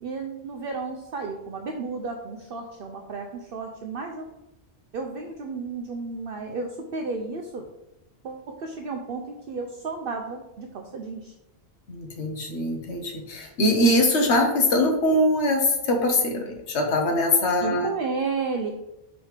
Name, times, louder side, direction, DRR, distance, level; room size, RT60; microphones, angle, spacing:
voice 1, 0.0-4.3 4.9-7.6 8.2-11.3 17.6-18.7, right 4 dB, 60° right, 3 dB, 0.7 m, -33 dB
voice 2, 11.9-17.9, left 1 dB, 75° left, 3 dB, 1.3 m, -22 dB
4.9 x 4.0 x 4.8 m, 0.89 s
omnidirectional pair, 1.2 m